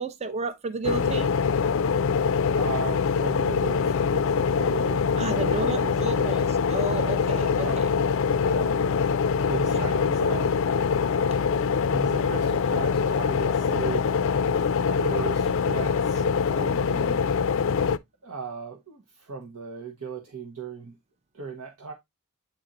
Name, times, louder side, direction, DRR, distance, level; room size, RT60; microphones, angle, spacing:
voice 1, 0.0-1.4 5.2-7.9 9.6-9.8, right 3 dB, 30° right, 0.6 m, -32 dB
sound 1, 0.8-18.0, left 6 dB, 60° left, 0.4 m, -24 dB
voice 2, 2.5-6.4 7.6-7.7 8.4-8.8 9.4-10.5 11.9-14.2 14.8-17.3 18.2-20.9 21.3-21.9, right 4 dB, 90° right, 1.1 m, -36 dB
8.6 x 3.9 x 3.0 m
head